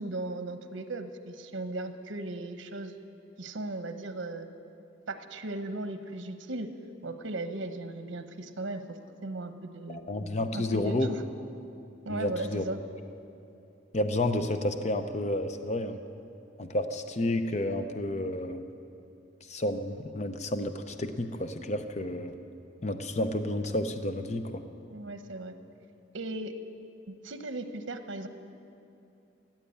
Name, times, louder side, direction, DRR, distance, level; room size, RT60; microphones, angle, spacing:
voice 1, 0.0-2.9 3.4-4.5 5.1-6.7 7.0-10.0 10.5-11.2 12.0-12.8 24.9-25.5 26.1-26.5 27.1-28.3, right 2 dB, 80° right, 8 dB, 0.9 m, -37 dB
voice 2, 9.9-11.1 12.1-12.6 13.9-16.0 16.6-18.6 19.5-22.4 22.8-24.6, left 1 dB, 35° left, 8 dB, 0.6 m, -30 dB
14.5 x 9.1 x 8.5 m, 2.7 s
head